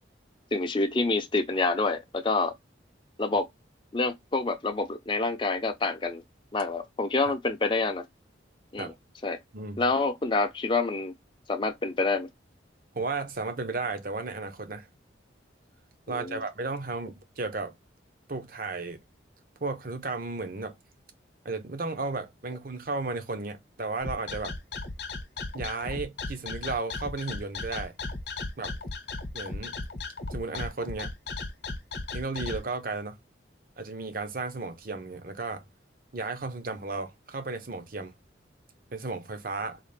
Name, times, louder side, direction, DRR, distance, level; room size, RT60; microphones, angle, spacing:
voice 1, 0.5-2.5 3.2-3.5 3.9-6.2 6.5-8.0 8.7-8.9 9.2-9.4 9.8-11.1 11.5-12.3 16.1-16.4, left 3 dB, 25° left, 0.5 m, -27 dB
voice 2, 9.5-9.8 12.9-14.9 16.1-17.8 18.3-19.0 19.6-20.7 21.4-24.5 25.5-27.9 28.6-28.7 29.3-29.8 30.3-31.1 32.1-33.2 33.8-35.6 36.1-38.1 38.9-39.8, right 3 dB, 50° right, 0.7 m, -34 dB
sound 1, 24.0-32.6, left 3 dB, 60° left, 0.8 m, -35 dB
4.0 x 2.4 x 3.3 m
head